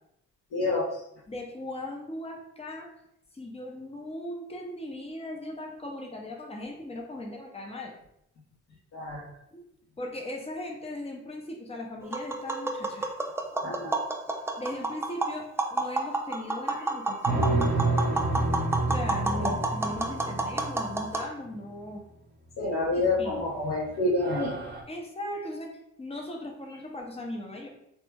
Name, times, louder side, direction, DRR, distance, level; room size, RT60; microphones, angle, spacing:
voice 1, 0.5-1.0 8.9-9.3 13.6-14.0 19.4-19.5 22.6-24.5, left 2 dB, 60° left, -8 dB, 0.9 m, -28 dB
voice 2, 1.3-2.9 3.3-7.9 9.5-9.6 10.0-13.0 14.6-17.5 18.9-22.0 23.2-23.4 24.9-25.7 26.0-27.7, left 1 dB, 20° left, 1 dB, 0.7 m, -38 dB
Tap, 12.0-21.2, right 2 dB, 10° right, 0.3 m, -30 dB
sound 1, 17.2-21.1 23.0-23.5 23.8-23.9 24.2-24.8, right 2 dB, 35° right, 0.7 m, -29 dB
3.1 x 2.2 x 3.4 m, 0.76 s
cardioid pair, 90°, 30 cm